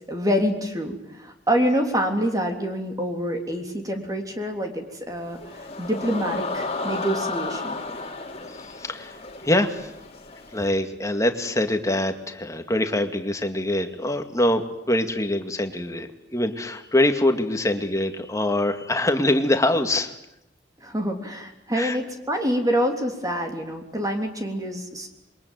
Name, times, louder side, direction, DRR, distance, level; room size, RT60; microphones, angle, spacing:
voice 1, 0.0-7.8 20.8-25.1, equal, 20° right, 4 dB, 3.4 m, -26 dB
sound 1, 5.2-10.7, left 3 dB, 35° left, 3.0 m, -33 dB
voice 2, 8.5-9.2 9.4-9.9 10.5-14.6 14.9-20.1 21.7-22.0, left 1 dB, 20° left, 6 dB, 2.1 m, -24 dB
27.5 x 23.0 x 9.4 m, 0.84 s
head